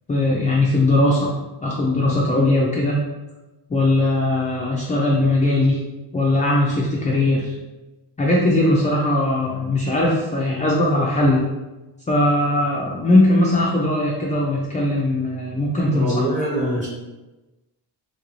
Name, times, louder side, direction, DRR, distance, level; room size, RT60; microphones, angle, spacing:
voice 1, 0.1-1.3 1.6-3.0 3.7-5.8 6.1-7.5 8.2-11.5 12.1-16.2, left 1 dB, 20° left, -3 dB, 0.3 m, -19 dB
voice 2, 15.9-16.9, equal, 15° right, -6 dB, 1.1 m, -23 dB
2.8 x 2.5 x 3.0 m, 1.1 s
cardioid pair, 120°, 42 cm